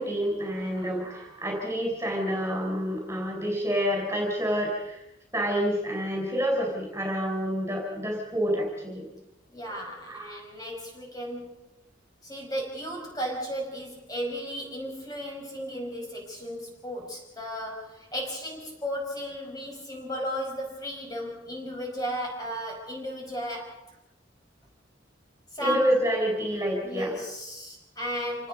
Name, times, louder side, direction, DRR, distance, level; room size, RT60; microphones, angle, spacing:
voice 1, 0.0-5.0 5.3-9.1 10.1-10.3 25.6-27.1, equal, 15° right, 1 dB, 4.7 m, -28 dB
voice 2, 0.6-0.9 9.5-11.6 12.2-24.0 25.5-25.9 26.8-28.5, equal, 20° left, 0 dB, 5.9 m, -35 dB
27.5 x 19.0 x 5.3 m, 0.89 s
head